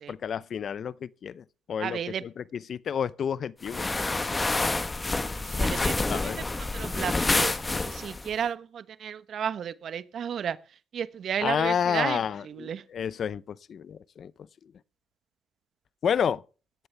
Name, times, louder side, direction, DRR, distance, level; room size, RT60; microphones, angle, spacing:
voice 1, 0.1-3.9 5.9-6.4 11.4-14.3 16.0-16.4, left 8 dB, 55° left, 0.6 m, -30 dB
voice 2, 1.8-2.2 5.6-5.9 6.6-10.6 10.9-12.2 12.6-12.8, right 8 dB, 60° right, 1.1 m, -32 dB
sound 1, 3.6-8.3, left 2 dB, 20° left, 1.3 m, -28 dB
17.5 x 13.5 x 3.4 m
cardioid pair, 90°, 0 cm